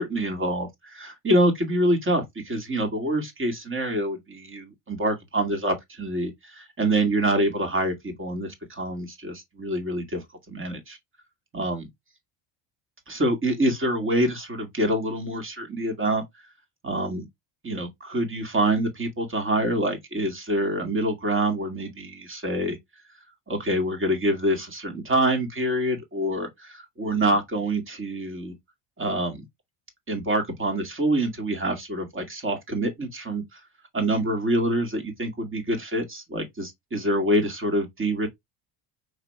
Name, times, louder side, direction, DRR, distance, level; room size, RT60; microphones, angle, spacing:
voice 1, 0.0-11.0 11.5-11.8 13.1-16.2 16.8-17.3 17.6-22.8 23.5-28.5 29.0-29.4 30.1-33.6 33.9-38.3, right 1 dB, 25° right, 2.1 m, -26 dB
5.1 x 3.3 x 3.2 m
supercardioid pair, 105°, 48 cm